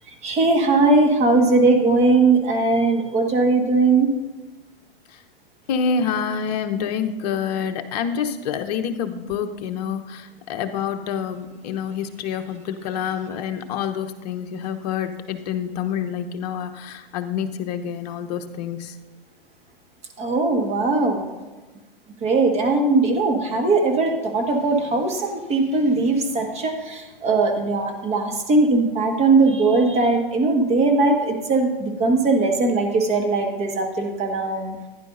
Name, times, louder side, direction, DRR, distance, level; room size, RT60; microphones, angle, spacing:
voice 1, 0.2-4.1 20.2-21.2 22.2-34.8, right 3 dB, 20° right, 2 dB, 1.6 m, -19 dB
voice 2, 5.7-18.9, left 7 dB, 45° left, 6 dB, 0.9 m, -27 dB
15.5 x 10.5 x 2.6 m, 1.2 s
figure-of-eight pair, 115°, 30 cm